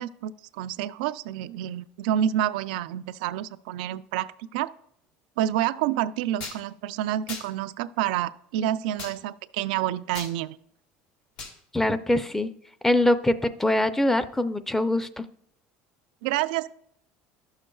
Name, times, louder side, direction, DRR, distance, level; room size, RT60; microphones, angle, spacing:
voice 1, 0.0-4.7 5.4-10.6 16.2-16.7, right 11 dB, 85° right, 14 dB, 0.3 m, -28 dB
sound 1, 6.4-6.6 7.3-7.5 9.0-9.1 10.1-10.3 11.4-11.6, left 4 dB, 85° left, 1.9 m, -37 dB
voice 2, 11.7-12.5 12.8-15.3, left 1 dB, 10° left, 12 dB, 0.5 m, -23 dB
11.5 x 6.4 x 2.3 m, 0.69 s
supercardioid pair, 105°, 5 cm